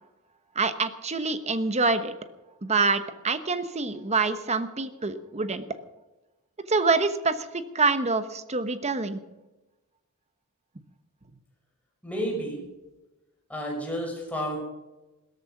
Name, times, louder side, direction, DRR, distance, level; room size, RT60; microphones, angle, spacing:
voice 1, 0.6-2.1 2.6-5.6 6.7-9.2, right 3 dB, 30° right, 10 dB, 1.1 m, -26 dB
voice 2, 12.0-12.6 13.5-14.6, equal, 5° left, -1 dB, 5.7 m, -31 dB
17.0 x 13.5 x 6.0 m, 1.0 s
head